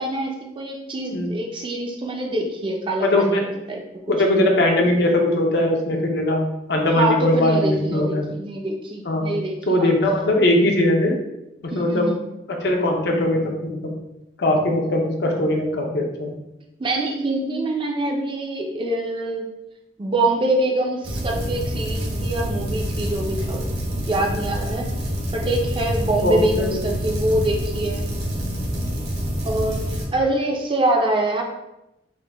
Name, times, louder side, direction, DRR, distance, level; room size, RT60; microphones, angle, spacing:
voice 1, 0.0-3.8 6.9-9.9 11.7-12.2 16.8-19.5 20.0-23.7 24.1-24.9 25.3-28.1 29.4-31.4, right 1 dB, 30° right, 1 dB, 0.4 m, -25 dB
voice 2, 3.0-3.4 4.1-6.4 6.7-8.3 9.0-9.2 9.7-11.2 11.6-12.1 12.5-13.9 14.4-16.3 26.2-26.9, left 1 dB, 65° left, 1 dB, 0.6 m, -20 dB
sound 1, 21.0-30.0, equal, 60° right, 0.7 m, -27 dB
3.7 x 2.1 x 3.3 m, 0.90 s
head